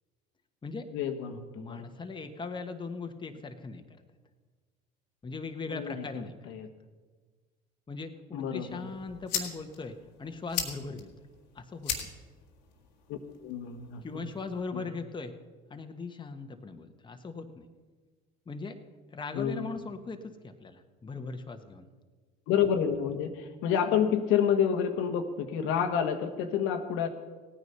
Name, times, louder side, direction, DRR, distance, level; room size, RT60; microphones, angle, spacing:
voice 1, 0.9-1.9 5.7-6.7 8.3-8.9 13.1-14.2 14.7-14.9 19.3-19.8 22.5-27.1, left 8 dB, 70° left, 6 dB, 1.3 m, -29 dB
voice 2, 1.5-4.0 5.2-6.5 7.9-11.1 11.5-12.1 14.0-15.3 15.7-17.6 18.5-18.8 19.1-21.9, left 4 dB, 20° left, 6 dB, 1.2 m, -39 dB
sound 1, 8.7-14.7, left 8 dB, 90° left, 1.7 m, -40 dB
16.5 x 9.5 x 5.6 m, 1.4 s
hypercardioid pair, 75°, 21 cm